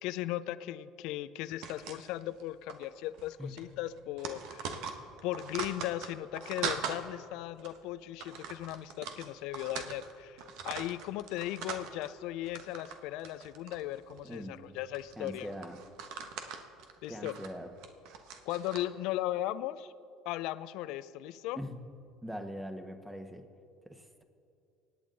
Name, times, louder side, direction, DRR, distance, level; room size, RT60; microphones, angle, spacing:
voice 1, 0.0-4.7 5.2-15.5 17.0-17.3 18.4-19.9 20.3-21.6, left 14 dB, 70° left, 15 dB, 0.5 m, -37 dB
sound 1, 1.6-2.4 2.7-2.9 3.1-3.3 3.6-7.0 7.6-7.8 8.2-10.1 10.4-12.1 12.4-13.0 13.2-14.4 14.9-18.8, right 6 dB, 70° right, 1.2 m, -41 dB
voice 2, 14.2-14.8 15.2-15.8 17.1-17.7 21.6-21.8 22.2-23.5 23.8-24.2, equal, 10° right, 6 dB, 1.6 m, -42 dB
25.0 x 9.1 x 4.0 m, 2.5 s
hypercardioid pair, 75°, 0 cm